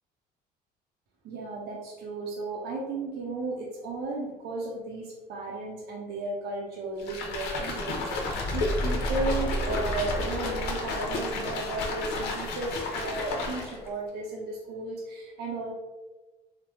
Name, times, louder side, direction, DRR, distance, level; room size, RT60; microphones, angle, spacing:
voice 1, 1.2-15.7, right 2 dB, 75° right, -3 dB, 0.6 m, -34 dB
sound 1, 7.0-13.9, left 2 dB, 90° left, 0.6 m, -32 dB
sound 2, 8.1-11.1, equal, 15° left, 0.6 m, -32 dB
3.3 x 2.1 x 3.0 m, 1.2 s
cardioid pair, 110°, 17 cm